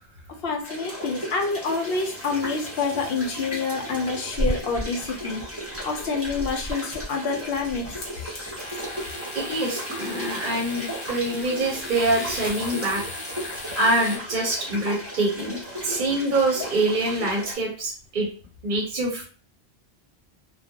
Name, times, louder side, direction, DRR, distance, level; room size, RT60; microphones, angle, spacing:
voice 1, 0.4-5.4 5.8-8.0, left 4 dB, 65° left, 4 dB, 0.8 m, -27 dB
sound 1, 0.6-17.5, equal, 15° right, 0.7 m, -36 dB
sound 2, 1.6-14.2, left 1 dB, 35° left, 0.6 m, -36 dB
voice 2, 9.3-13.0 13.4-18.3 18.6-19.2, right 2 dB, 55° right, -2 dB, 0.7 m, -25 dB
2.3 x 2.0 x 2.7 m, 0.38 s
omnidirectional pair, 1.1 m